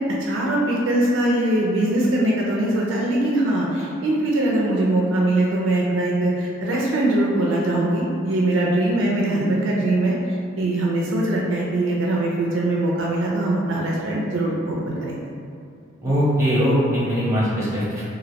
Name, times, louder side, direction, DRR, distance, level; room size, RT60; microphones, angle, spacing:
voice 1, 0.1-10.2 10.6-15.2, right 1 dB, 65° right, -3 dB, 0.4 m, -22 dB
voice 2, 16.0-18.0, equal, 15° right, -8 dB, 0.8 m, -21 dB
3.0 x 2.5 x 2.8 m, 2.5 s
head